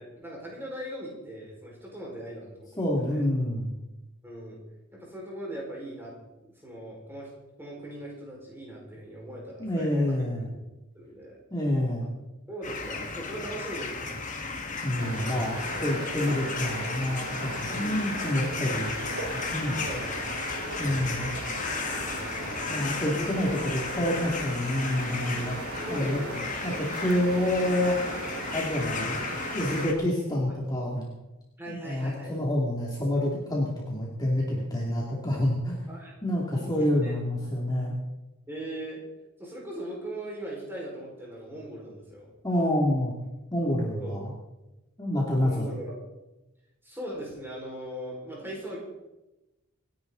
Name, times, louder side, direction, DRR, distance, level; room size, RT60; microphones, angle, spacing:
voice 1, 0.0-3.3 4.2-4.6 4.9-6.1 6.4-7.3 7.6-10.4 10.9-11.4 12.5-14.2 17.8-18.2 19.8-20.3 21.1-22.5 23.2-23.3 25.9-26.5 31.6-32.4 35.9-36.1 36.6-37.2 38.5-39.0 39.4-42.3 44.0-44.3 45.3-46.0 46.8-48.8, right 1 dB, 10° right, -3 dB, 5.0 m, -40 dB
voice 2, 2.8-3.7 9.6-10.5 11.5-12.1 14.8-18.9 19.5-19.9 20.8-21.3 22.7-25.6 25.9-26.2 26.6-28.0 28.5-29.2 29.5-31.1 31.7-35.8 36.2-37.9 42.4-43.1 43.5-44.3 45.0-45.7, left 1 dB, 20° left, -3 dB, 2.5 m, -28 dB
sound 1, 12.6-29.9, left 4 dB, 35° left, 1.8 m, -34 dB
sound 2, 15.0-29.9, right 3 dB, 85° right, 2.5 m, -38 dB
27.0 x 10.5 x 4.0 m, 1.0 s
head